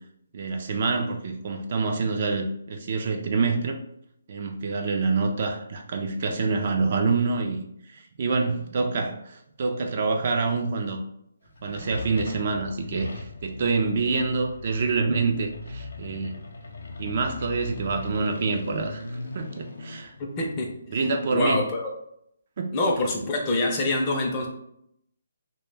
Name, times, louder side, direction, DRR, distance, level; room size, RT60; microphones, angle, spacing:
voice 1, 0.3-3.8 4.3-7.6 7.9-11.0 11.6-16.3 17.0-19.0 19.3-20.1 20.9-21.6 22.6-22.7, right 4 dB, 40° right, 3 dB, 0.3 m, -26 dB
sound 1, 11.4-21.8, left 3 dB, 80° left, 0.4 m, -40 dB
voice 2, 20.2-20.7 21.3-21.9 22.7-24.5, left 2 dB, 20° left, 0 dB, 0.4 m, -25 dB
2.1 x 2.1 x 3.2 m, 0.72 s
hypercardioid pair, 165°, 0 cm